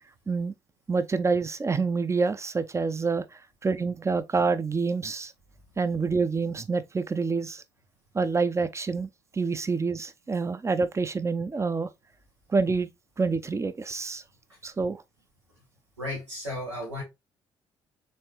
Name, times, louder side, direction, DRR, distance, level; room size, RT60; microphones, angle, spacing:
voice 1, 0.9-3.3 3.6-5.3 5.8-7.6 8.1-11.9 12.5-12.9 13.2-14.2 14.6-15.0, right 4 dB, 20° right, 0.6 m, -27 dB
voice 2, 16.0-17.0, left 1 dB, 90° right, 1.0 m, -34 dB
4.2 x 3.7 x 3.2 m
figure-of-eight pair, 45°, 14 cm